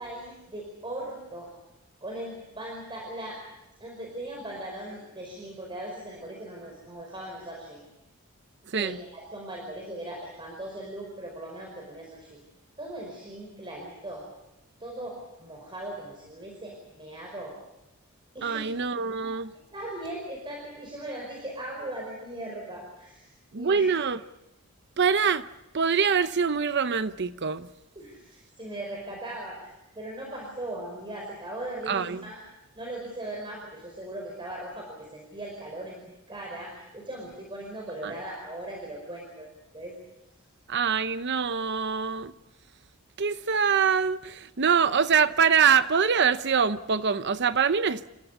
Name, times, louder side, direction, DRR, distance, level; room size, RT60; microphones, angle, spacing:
voice 1, 0.0-1.5 2.0-3.4 3.8-7.8 8.7-12.4 12.8-14.2 14.8-17.5 18.3-18.7 19.2-19.3 19.7-23.3 23.6-23.9 28.0-32.4 32.8-39.5 39.7-40.0, right 1 dB, 25° right, 5.2 m, -39 dB
voice 2, 8.7-9.0 18.4-19.5 23.5-24.2 25.0-25.4 25.7-27.7 31.9-32.2 38.0-38.1 40.7-42.3 43.2-48.0, right 6 dB, 55° right, 0.8 m, -24 dB
28.5 x 15.5 x 8.3 m
head